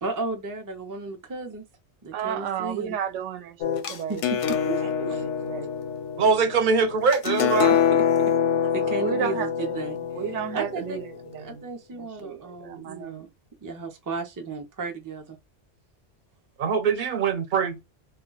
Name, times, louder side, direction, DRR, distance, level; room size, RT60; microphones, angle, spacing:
voice 1, 0.0-1.6 2.0-3.0 3.9-4.4 4.7-5.2 7.7-8.0 8.7-10.0 10.5-11.0 11.4-13.3 13.6-15.4, right 3 dB, 30° right, 0.4 m, -34 dB
voice 2, 2.1-4.2 4.6-5.7 8.8-9.8 10.1-11.6 11.9-13.3, right 9 dB, 85° right, 0.9 m, -33 dB
sound 1, 3.6-11.3, left 8 dB, 85° left, 0.9 m, -26 dB
voice 3, 6.2-7.7 16.6-17.8, right 5 dB, 50° right, 0.8 m, -22 dB
2.2 x 2.2 x 3.8 m
omnidirectional pair, 1.2 m